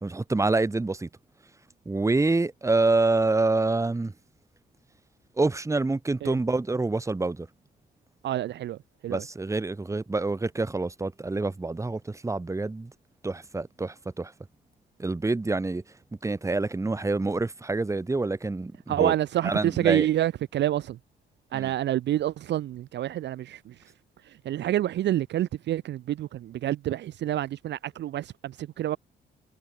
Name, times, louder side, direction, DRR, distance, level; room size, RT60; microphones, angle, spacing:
voice 1, 0.0-1.1 1.8-4.1 5.4-7.5 9.1-12.9 13.2-14.3 15.0-15.8 16.2-19.1 19.4-20.1 21.5-21.7, right 3 dB, 15° right, 1.2 m, -27 dB
voice 2, 8.2-8.8 9.0-9.2 18.9-21.0 21.5-23.7 24.3-29.0, right 13 dB, 60° right, 0.5 m, -28 dB
cardioid pair, 90°, 20 cm